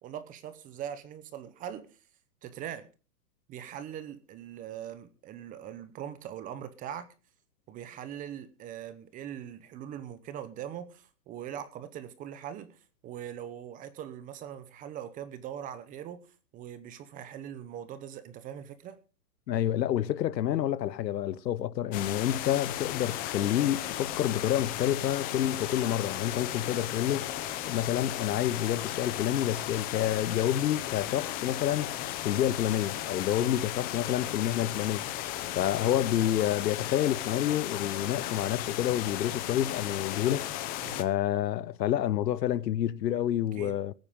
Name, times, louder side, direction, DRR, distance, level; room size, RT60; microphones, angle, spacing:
voice 1, 0.0-2.0 2.4-2.9 3.5-7.1 7.7-16.3 16.5-19.0 33.4-33.7 34.3-34.6 40.8-41.0 43.5-43.8, right 10 dB, 15° right, 0.8 m, -41 dB
voice 2, 19.5-35.3 35.5-40.6 41.0-43.9, left 11 dB, 85° left, 1.0 m, -29 dB
sound 1, 21.9-41.0, left 13 dB, 20° left, 0.7 m, -35 dB
21.0 x 9.1 x 3.7 m
hypercardioid pair, 150°, 49 cm